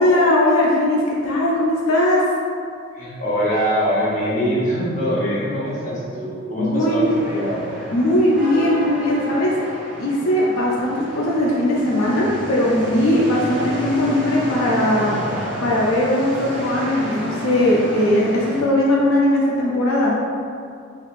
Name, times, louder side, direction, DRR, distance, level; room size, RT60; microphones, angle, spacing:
voice 1, 0.0-2.2 6.6-7.2 7.9-9.5 10.0-20.2, left 1 dB, 75° left, -4 dB, 0.4 m, -19 dB
voice 2, 2.9-7.7, equal, 35° left, -7 dB, 0.7 m, -23 dB
sound 1, 7.0-18.6, equal, 5° right, 1.1 m, -31 dB
3.0 x 2.9 x 2.4 m, 2.3 s
head